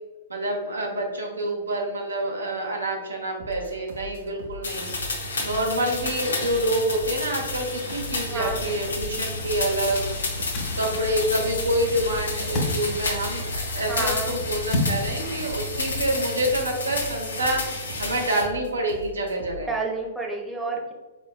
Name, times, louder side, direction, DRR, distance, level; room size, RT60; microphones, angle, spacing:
voice 1, 0.3-4.9 5.4-10.1 10.8-17.6 18.0-19.7, right 1 dB, 90° right, 0 dB, 0.9 m, -27 dB
sound 1, 3.4-19.7, left 1 dB, 65° right, 0.6 m, -41 dB
sound 2, 4.6-18.4, left 2 dB, 80° left, 0.7 m, -31 dB
Ocean, 7.9-16.0, left 1 dB, 40° left, 1.1 m, -33 dB
voice 2, 8.3-8.6 13.9-14.3 16.1-16.3 19.7-20.9, right 3 dB, 5° right, -1 dB, 0.7 m, -30 dB
4.2 x 3.5 x 2.2 m, 1.2 s
hypercardioid pair, 115°, 0 cm